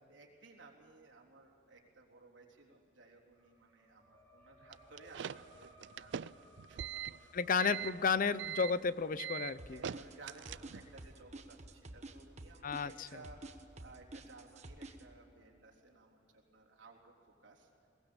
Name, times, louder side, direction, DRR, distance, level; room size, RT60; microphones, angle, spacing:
voice 1, 0.1-6.2 6.7-7.5 9.7-13.4 13.8-17.7, right 3 dB, 90° right, -1 dB, 3.6 m, -58 dB
sound 1, 3.3-14.5, equal, 5° left, 2.8 m, -65 dB
sound 2, 4.7-11.0, right 9 dB, 70° right, 0.4 m, -43 dB
voice 2, 7.3-9.8 12.6-13.1, left 5 dB, 50° left, 16 dB, 0.6 m, -32 dB
sound 3, 9.6-15.0, right 2 dB, 40° right, 1.3 m, -49 dB
21.5 x 19.0 x 7.1 m, 2.8 s
head